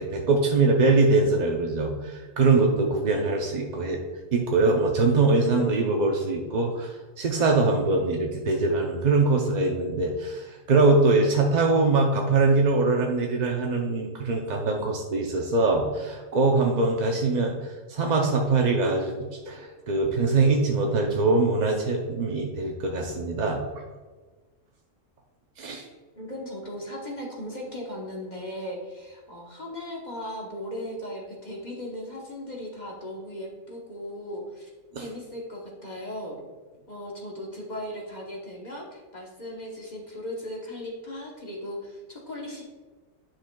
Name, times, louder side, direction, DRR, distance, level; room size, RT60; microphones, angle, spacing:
voice 1, 0.0-4.0 4.3-23.6 25.6-25.9 34.9-35.1, right 3 dB, 50° right, 1 dB, 0.5 m, -23 dB
voice 2, 26.2-34.7 35.0-36.4 36.9-42.6, left 1 dB, 35° left, -2 dB, 1.0 m, -37 dB
10.0 x 5.9 x 2.3 m, 1.3 s
omnidirectional pair, 1.4 m